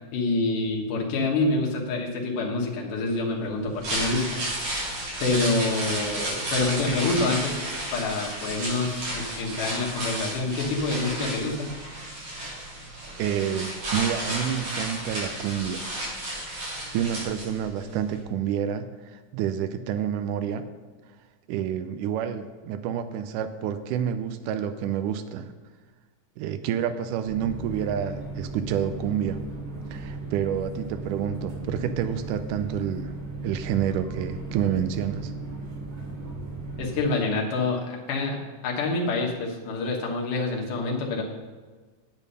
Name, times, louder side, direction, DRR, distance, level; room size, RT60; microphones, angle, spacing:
voice 1, 0.1-4.5 5.2-7.6 7.9-11.7 36.8-41.2, left 3 dB, 80° left, -2 dB, 3.0 m, -27 dB
sound 1, 3.6-17.8 18.1-18.2, right 1 dB, 50° right, 4.8 m, -32 dB
voice 2, 13.2-15.9 16.9-20.7 21.5-25.5 26.4-29.4 29.9-33.1 33.4-35.3, right 9 dB, 85° right, 9 dB, 2.2 m, -28 dB
sound 2, 27.2-37.0, right 2 dB, 70° right, 3.8 m, -36 dB
8.9 x 8.5 x 5.5 m, 1.4 s
omnidirectional pair, 3.6 m